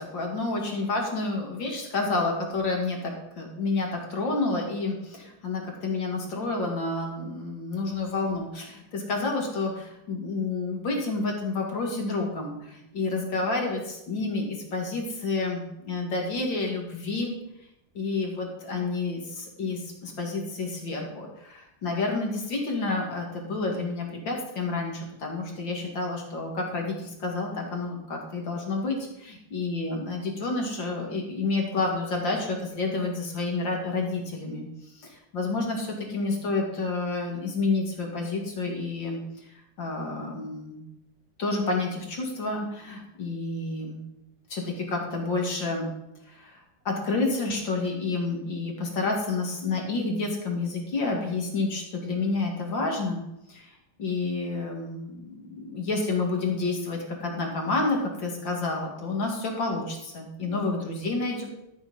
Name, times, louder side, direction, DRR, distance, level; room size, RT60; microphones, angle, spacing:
voice 1, 0.0-17.4 17.9-34.6 34.9-39.2 39.8-40.9 41.4-44.1 44.5-45.9 46.3-46.6 46.8-53.2 53.5-53.7 54.0-61.5, left 3 dB, 75° left, 0 dB, 2.9 m, -29 dB
13.5 x 5.8 x 5.6 m, 0.86 s
omnidirectional pair, 2.1 m